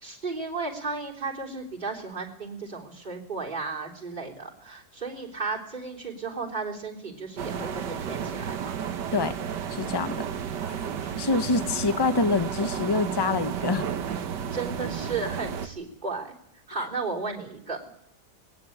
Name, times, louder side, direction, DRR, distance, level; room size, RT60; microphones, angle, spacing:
voice 1, 0.0-8.8 14.5-16.3 16.7-17.8, right 4 dB, 25° right, -2 dB, 3.6 m, -34 dB
sound 1, 7.4-15.7, right 8 dB, 85° right, 1.8 m, -32 dB
voice 2, 9.7-10.3 10.6-10.8 11.2-13.9, left 4 dB, 20° left, 11 dB, 0.8 m, -26 dB
21.0 x 17.0 x 8.7 m, 0.70 s
omnidirectional pair, 1.8 m